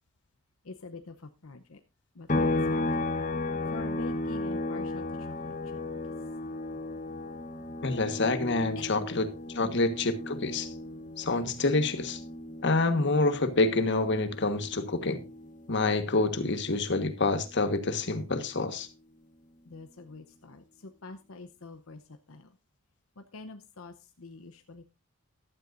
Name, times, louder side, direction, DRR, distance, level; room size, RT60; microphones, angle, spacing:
voice 1, 0.6-1.8 2.2-3.0 3.7-5.5 8.8-9.1 9.6-9.7 19.7-22.0 22.3-22.5 23.2-24.8, left 3 dB, 80° left, 0.8 m, -46 dB
sound 1, 2.3-15.8 16.2-18.4, left 2 dB, 35° left, 1.1 m, -35 dB
voice 2, 7.8-9.3 9.5-10.7 11.2-12.2 12.6-15.2 15.7-18.9, left 2 dB, 55° left, 1.4 m, -27 dB
14.5 x 12.5 x 2.6 m
head